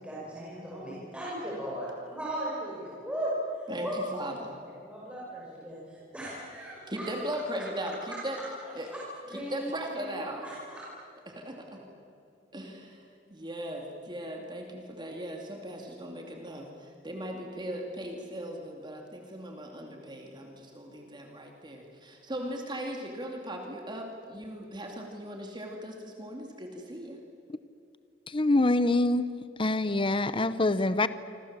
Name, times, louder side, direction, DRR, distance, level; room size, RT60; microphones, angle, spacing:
voice 1, 0.0-3.3 3.6-4.0 4.8-7.1 7.5-7.6 8.9-9.0 9.2-10.1 10.4-10.8, equal, 5° right, -7 dB, 5.6 m, -38 dB
voice 2, 3.7-4.5 6.9-8.4 8.7-8.9 9.3-10.4 11.3-11.9 12.5-13.0 13.3-27.2, right 1 dB, 25° right, 2 dB, 2.5 m, -38 dB
voice 3, 28.3-29.2 29.6-31.1, left 2 dB, 30° left, 14 dB, 0.7 m, -25 dB
27.0 x 26.5 x 7.4 m, 2.7 s
head